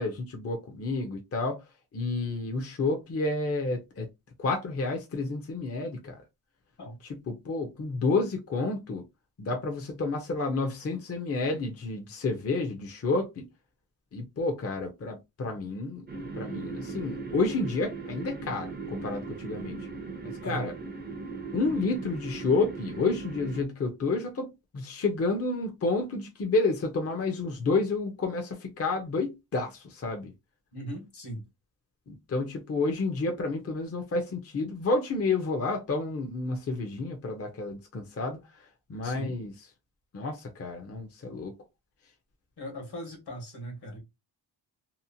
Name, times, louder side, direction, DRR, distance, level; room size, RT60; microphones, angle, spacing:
voice 1, 0.0-1.6 1.9-4.1 4.4-6.2 7.0-9.0 9.4-13.4 14.1-16.1 16.4-19.8 20.2-20.7 21.5-30.3 32.1-39.5 40.1-41.5, left 3 dB, 35° left, 0.5 m, -30 dB
sound 1, 16.1-23.7, right 4 dB, 25° right, 0.5 m, -38 dB
voice 2, 20.4-20.7 30.7-31.4 39.0-39.3 42.6-44.0, right 1 dB, 65° left, 1.2 m, -39 dB
2.8 x 2.1 x 2.6 m
wide cardioid pair, 125°, 43 cm